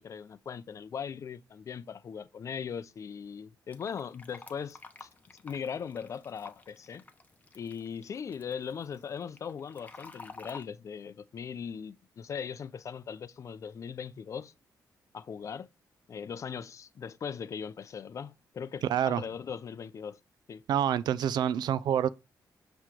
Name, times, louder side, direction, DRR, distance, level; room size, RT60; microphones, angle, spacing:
voice 1, 0.0-5.1 5.4-7.0 7.5-14.5 15.1-15.7 16.1-20.2 20.5-20.6, left 7 dB, 45° left, 0.4 m, -39 dB
Fill (with liquid), 3.7-10.6, left 3 dB, 20° left, 0.8 m, -51 dB
voice 2, 18.9-19.2 20.7-22.1, right 9 dB, 80° right, 0.4 m, -27 dB
7.5 x 3.0 x 4.8 m
cardioid pair, 125°, 7 cm